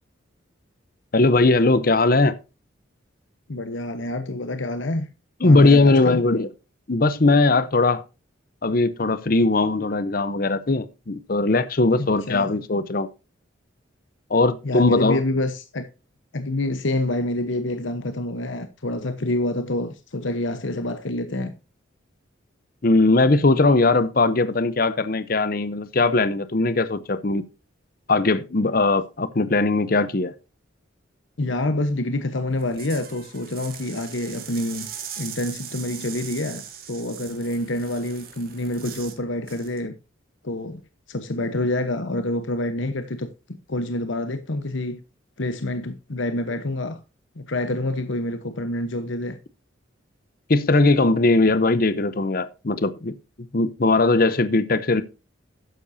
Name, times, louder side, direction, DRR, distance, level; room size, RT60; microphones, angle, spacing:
voice 1, 1.1-2.3 5.4-6.5 6.9-8.0 8.6-13.1 14.3-15.2 22.8-27.4 28.1-30.3 50.5-53.1 53.5-55.0, left 3 dB, 45° left, 0.7 m, -19 dB
voice 2, 3.5-5.1 5.4-6.2 12.0-12.5 14.6-15.9 16.3-21.5 31.4-34.9 35.2-39.9 40.4-40.8 41.1-43.3 43.7-45.0 45.4-47.0 47.4-49.4, left 1 dB, 75° left, 1.0 m, -27 dB
sound 1, 32.5-39.2 39.5-39.8, right 9 dB, 50° right, 2.9 m, -40 dB
12.5 x 9.8 x 2.7 m
head